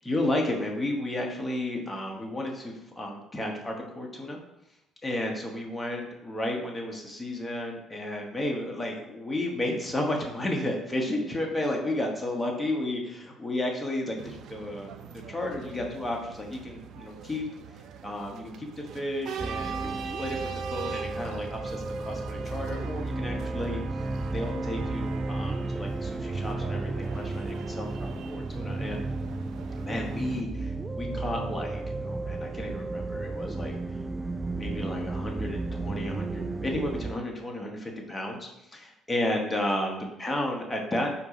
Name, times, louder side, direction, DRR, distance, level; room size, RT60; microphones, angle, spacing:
voice 1, 0.0-4.4 5.0-14.9 15.3-17.5 18.0-23.8 24.3-29.1 29.8-34.0 34.5-41.1, left 1 dB, 15° left, 0 dB, 1.1 m, -32 dB
sound 1, 14.2-30.4, right 7 dB, 70° right, 0.6 m, -42 dB
sound 2, 19.4-37.1, right 2 dB, 20° right, 0.3 m, -33 dB
7.5 x 2.7 x 4.9 m, 0.89 s
cardioid pair, 105°, 0 cm